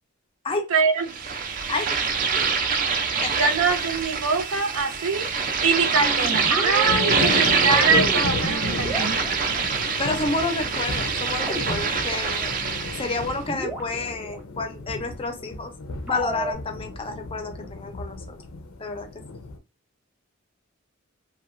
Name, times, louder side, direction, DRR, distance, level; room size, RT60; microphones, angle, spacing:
voice 1, 0.7-1.3 3.3-5.3 5.6-9.2, right 4 dB, 90° right, 0.6 m, -24 dB
sound 1, 1.1-13.3, right 5 dB, 40° right, 0.4 m, -25 dB
voice 2, 1.7-2.1 3.2-3.3 10.0-12.5 13.0-15.7 16.0-18.2 18.8-19.1, left 3 dB, 25° left, 0.5 m, -30 dB
sound 2, 6.0-9.7 11.4-12.4 12.7-12.8 13.2-13.3 13.5-14.4 16.1-16.5, right 2 dB, 5° right, 0.7 m, -33 dB
sound 3, 6.8-19.6, left 3 dB, 80° left, 0.6 m, -34 dB
2.8 x 2.2 x 2.5 m
head